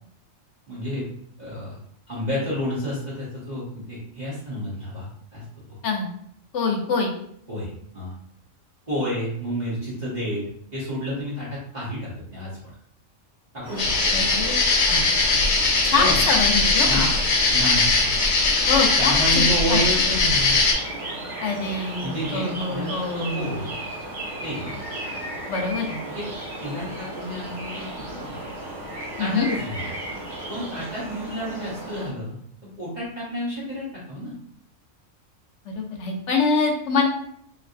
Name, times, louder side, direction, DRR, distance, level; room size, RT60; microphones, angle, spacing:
voice 1, 0.7-1.1 1.4-1.8 2.1-5.8 7.5-8.1 8.9-10.4 10.7-12.5 13.5-13.9 16.0-16.2 16.8-17.1 17.5-18.0 19.0-20.6 22.0-23.7 24.4-24.8 26.1-26.2 26.6-28.4 29.2-29.9 30.5-32.4 32.8-34.3, equal, 35° right, -8 dB, 1.1 m, -30 dB
voice 2, 6.5-7.1 14.1-15.5 15.8-17.1 18.7-19.1 19.7-19.8 21.4-23.7 25.5-26.0 29.2-29.5 35.6-37.1, left 4 dB, 65° left, 1 dB, 1.0 m, -25 dB
sound 1, 13.6-32.1, right 1 dB, 65° right, 1.6 m, -35 dB
sound 2, 13.8-20.7, left 3 dB, 85° left, 1.2 m, -20 dB
3.2 x 2.6 x 2.5 m, 0.68 s
omnidirectional pair, 1.4 m